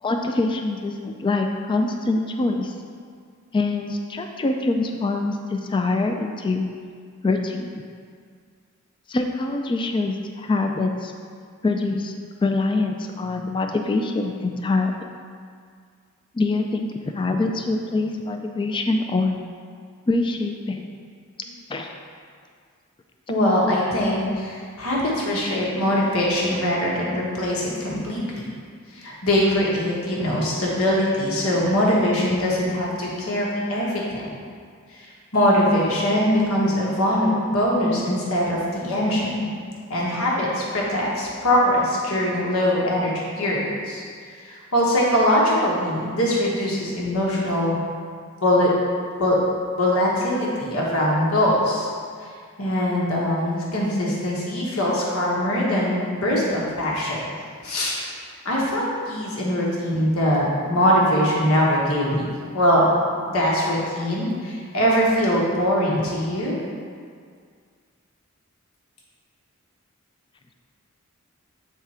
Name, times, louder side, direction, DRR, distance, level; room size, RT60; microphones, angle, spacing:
voice 1, 0.0-2.7 3.5-6.6 7.2-7.7 9.1-11.1 11.6-12.1 12.4-14.9 16.3-16.9 17.1-19.3 20.1-20.8 21.7-21.9, left 3 dB, 25° left, 4 dB, 0.3 m, -24 dB
voice 2, 23.3-28.5 28.9-34.2 34.9-35.1 35.3-39.5 39.9-44.0 44.4-47.7 48.4-48.7 49.2-49.4 49.8-51.9 52.6-57.2 57.6-58.0 58.4-62.3 62.5-62.9 63.3-66.5, equal, 75° left, -4 dB, 1.3 m, -22 dB
7.9 x 3.6 x 4.3 m, 2.1 s
head